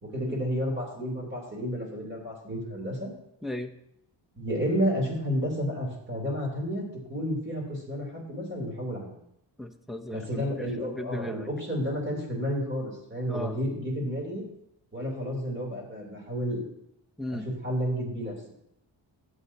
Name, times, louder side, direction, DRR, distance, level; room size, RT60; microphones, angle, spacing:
voice 1, 0.0-3.1 4.3-9.1 10.1-14.4 14.9-16.6 17.3-18.4, equal, 25° right, -1 dB, 3.1 m, -31 dB
voice 2, 3.4-3.7 9.6-11.5 13.3-13.6 17.2-17.5, left 1 dB, ahead, 2 dB, 0.6 m, -36 dB
17.5 x 7.9 x 2.8 m, 0.77 s
wide cardioid pair, 170°, 46 cm